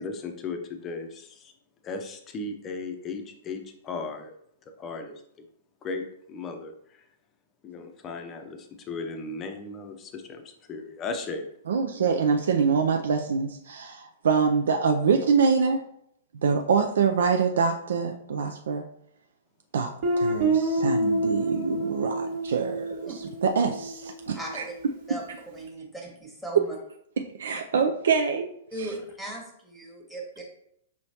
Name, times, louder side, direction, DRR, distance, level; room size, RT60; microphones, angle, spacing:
voice 1, 0.0-1.5 1.8-4.3 4.8-5.2 5.8-7.0 7.6-11.5 28.8-29.0, left 3 dB, 25° left, 5 dB, 0.6 m, -36 dB
voice 2, 11.7-15.8 16.4-18.8 19.7-19.9 20.2-24.6 27.4-28.5 28.8-28.9, right 5 dB, 65° right, 4 dB, 0.3 m, -25 dB
Guitar, 20.0-24.7, right 2 dB, 45° right, 1.0 m, -28 dB
voice 3, 24.3-24.7 25.1-25.2 25.5-26.8 28.7-30.4, right 1 dB, ahead, 0 dB, 1.1 m, -38 dB
5.6 x 3.0 x 2.8 m, 0.72 s
figure-of-eight pair, 105°, 0 cm